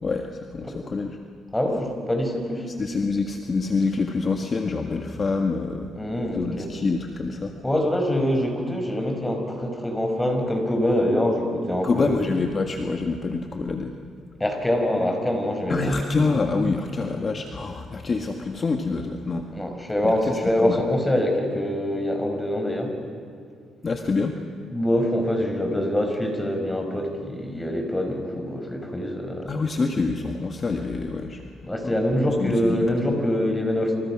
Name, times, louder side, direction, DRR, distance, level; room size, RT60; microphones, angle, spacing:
voice 1, 0.0-1.2 2.7-5.9 6.3-7.5 11.8-13.9 15.7-19.5 20.0-20.1 20.6-20.8 23.8-24.4 29.5-31.4 31.8-32.9, left 4 dB, 40° left, 4 dB, 1.8 m, -26 dB
voice 2, 1.5-2.7 6.0-6.7 7.6-12.2 14.4-15.9 16.9-17.1 19.5-22.9 24.7-29.6 31.6-34.0, left 1 dB, 10° left, 4 dB, 5.5 m, -24 dB
28.0 x 28.0 x 6.2 m, 2.3 s
cardioid pair, 90°, 0 cm